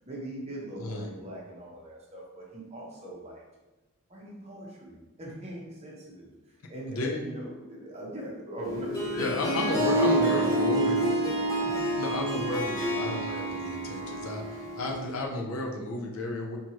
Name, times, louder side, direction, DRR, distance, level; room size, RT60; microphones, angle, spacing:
voice 1, 0.1-3.4 4.1-6.3 6.7-11.2 11.6-11.8, right 1 dB, 30° right, -3 dB, 0.9 m, -40 dB
voice 2, 0.8-1.1 6.9-7.2 9.1-11.0 12.0-16.6, left 2 dB, 85° left, 1 dB, 0.7 m, -33 dB
Harp, 8.6-15.1, right 1 dB, 15° left, 0.6 m, -28 dB
4.5 x 2.7 x 3.0 m, 1.1 s
head